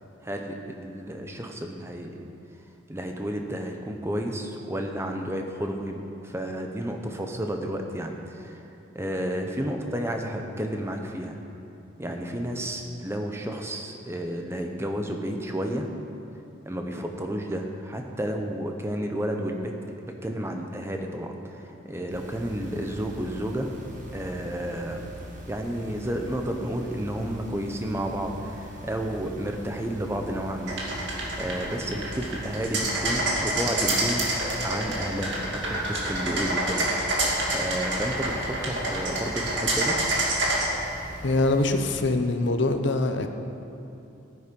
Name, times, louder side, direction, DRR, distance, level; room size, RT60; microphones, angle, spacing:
voice 1, 0.2-2.3 2.9-8.6 8.9-11.4 12.0-15.9 16.6-19.7 20.0-23.7 24.1-25.0 25.5-34.2 34.6-36.8 37.5-40.0, equal, 15° right, 3 dB, 0.8 m, -31 dB
sound 1, 22.1-42.0, equal, 40° right, 1.8 m, -42 dB
sound 2, 30.7-40.7, right 2 dB, 65° right, 2.4 m, -27 dB
voice 2, 41.2-43.3, left 2 dB, 60° left, 7 dB, 0.8 m, -23 dB
14.0 x 9.8 x 5.3 m, 2.8 s
head